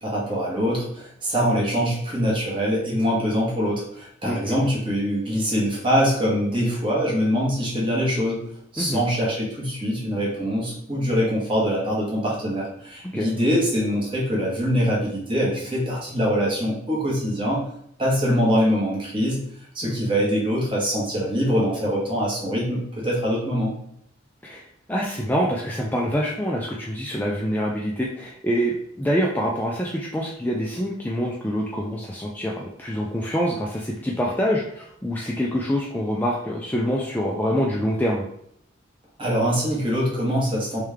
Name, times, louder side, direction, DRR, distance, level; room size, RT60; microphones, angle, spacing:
voice 1, 0.0-8.4 8.7-17.6 18.0-19.4 19.7-23.7 39.2-40.8, equal, 25° right, -4 dB, 1.2 m, -23 dB
voice 2, 4.2-4.7 8.8-9.0 13.1-13.3 19.8-20.0 24.4-38.2, equal, 10° left, -3 dB, 0.3 m, -26 dB
3.3 x 3.3 x 3.5 m, 0.71 s
head